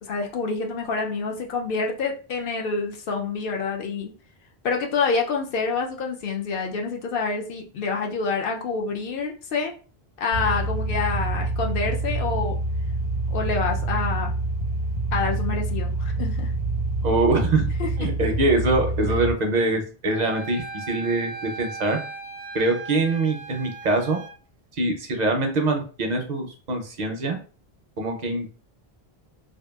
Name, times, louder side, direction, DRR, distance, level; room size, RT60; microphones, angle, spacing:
voice 1, 0.0-4.1 4.6-9.7 10.2-12.6 13.3-14.3 15.1-16.5 17.8-18.1, left 4 dB, 65° left, 2 dB, 0.7 m, -27 dB
sound 1, 10.3-19.3, right 2 dB, 85° left, 1.3 m, -26 dB
voice 2, 17.0-17.6 18.0-22.0 22.5-24.2 24.8-27.4 28.0-28.5, right 2 dB, 55° right, 3 dB, 0.5 m, -24 dB
Wind instrument woodwind instrument, 20.1-24.3, right 3 dB, 80° right, 0.8 m, -37 dB
2.8 x 2.4 x 2.2 m, 0.38 s
omnidirectional pair, 1.0 m